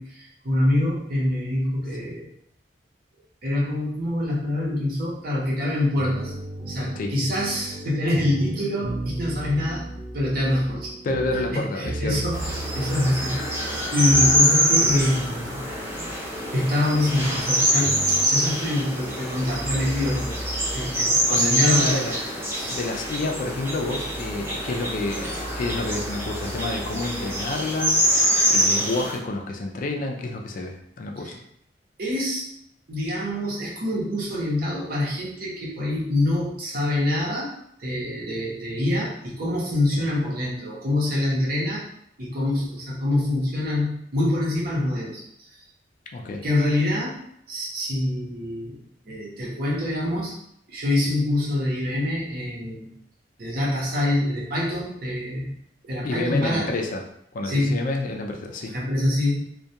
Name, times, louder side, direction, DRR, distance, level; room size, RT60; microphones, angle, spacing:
voice 1, 0.0-2.2 3.4-6.3 6.6-9.9 10.1-10.9 11.3-15.6 16.5-20.4 20.7-22.1 22.5-22.8 31.2-31.3 32.0-32.5 32.9-37.5 37.8-41.8 42.2-45.6 46.4-47.2 47.5-48.8 49.1-50.3 50.7-52.9 53.4-55.5 55.8-56.7 57.4-57.9 58.7-59.4, left 1 dB, 55° right, -5 dB, 0.8 m, -25 dB
sound 1, 6.0-18.3, right 2 dB, 90° right, 0.5 m, -35 dB
voice 2, 11.0-12.2 20.9-21.0 21.3-22.2 22.7-28.0 28.5-31.4 46.1-46.4 56.0-57.0 57.3-58.8, left 2 dB, 50° left, 3 dB, 0.3 m, -29 dB
sound 2, 12.3-29.2, equal, 15° right, 0.5 m, -25 dB
2.3 x 2.2 x 2.7 m, 0.70 s
head